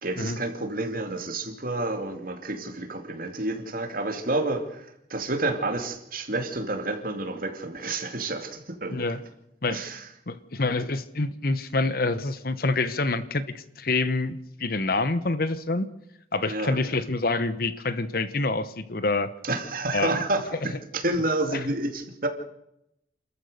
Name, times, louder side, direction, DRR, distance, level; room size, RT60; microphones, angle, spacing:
voice 1, 0.0-9.0 9.7-10.0 16.5-17.0 19.4-22.3, right 2 dB, 50° right, 5 dB, 2.5 m, -29 dB
voice 2, 10.3-15.9 16.3-19.3 19.9-20.2 21.5-21.6, left 3 dB, 55° left, 14 dB, 1.0 m, -27 dB
29.0 x 14.0 x 6.6 m, 0.82 s
head